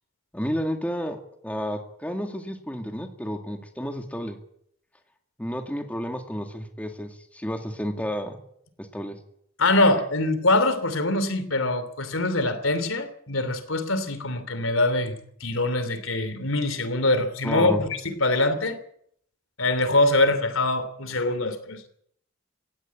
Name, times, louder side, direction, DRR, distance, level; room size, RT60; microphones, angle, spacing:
voice 1, 0.3-1.2 1.4-4.4 5.4-8.4 8.8-9.2 17.4-17.8, equal, 5° left, 4 dB, 2.2 m, -31 dB
voice 2, 9.6-18.8 19.6-21.9, left 2 dB, 75° left, 11 dB, 3.1 m, -24 dB
18.5 x 16.5 x 8.5 m, 0.68 s
head